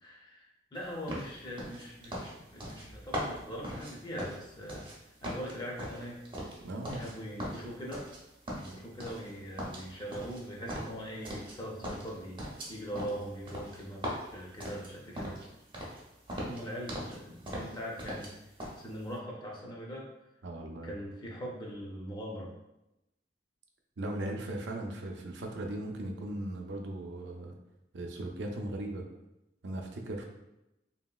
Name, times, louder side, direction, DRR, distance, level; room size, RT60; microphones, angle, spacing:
voice 1, 0.0-4.9 5.2-6.2 6.9-8.1 8.6-12.4 12.7-15.4 16.5-18.3 18.8-20.1 20.8-22.5, equal, 25° left, -3 dB, 0.5 m, -41 dB
sound 1, 1.1-5.0 5.2-7.1 7.4-8.2 8.5-9.3 9.6-11.6 11.8-15.5 15.7-16.0 16.3-17.2 17.5-18.3 18.6-18.8, equal, 30° right, 0.6 m, -40 dB
voice 2, 6.6-7.0 20.4-20.9 24.0-27.6 27.9-29.1 29.6-30.2, right 1 dB, 85° right, 2 dB, 0.4 m, -38 dB
2.9 x 2.7 x 2.3 m, 0.91 s
head